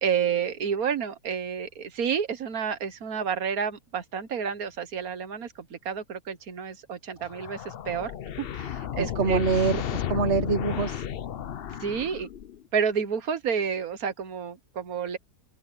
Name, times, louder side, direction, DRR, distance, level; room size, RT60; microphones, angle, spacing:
voice 1, 0.0-8.1 8.4-9.4 11.7-12.3 12.7-15.2, right 7 dB, 65° right, 1.6 m, -30 dB
sound 1, 7.2-12.7, left 10 dB, 60° left, 0.6 m, -33 dB
voice 2, 9.0-11.1, right 5 dB, 50° right, 1.2 m, -25 dB
open air
omnidirectional pair, 1.7 m